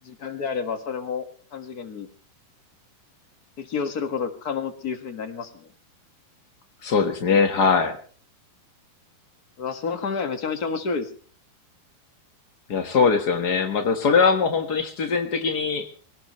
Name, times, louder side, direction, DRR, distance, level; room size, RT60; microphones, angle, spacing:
voice 1, 0.0-2.1 3.6-5.7 9.6-11.1, left 5 dB, 45° left, 8 dB, 1.2 m, -30 dB
voice 2, 6.8-8.0 12.7-15.9, left 5 dB, 85° left, 7 dB, 0.8 m, -21 dB
24.0 x 17.5 x 3.2 m, 0.42 s
omnidirectional pair, 4.4 m